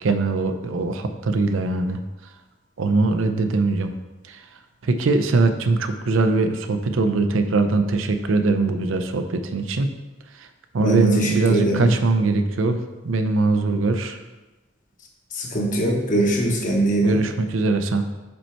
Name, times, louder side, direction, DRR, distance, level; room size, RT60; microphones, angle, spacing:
voice 1, 0.0-2.0 2.8-3.9 4.9-9.9 10.7-12.8 13.0-14.2 17.0-18.0, right 3 dB, 85° right, 8 dB, 0.5 m, -21 dB
voice 2, 10.8-11.9 15.3-17.2, right 2 dB, 40° left, 0 dB, 1.0 m, -21 dB
5.3 x 4.5 x 4.4 m, 1.1 s
head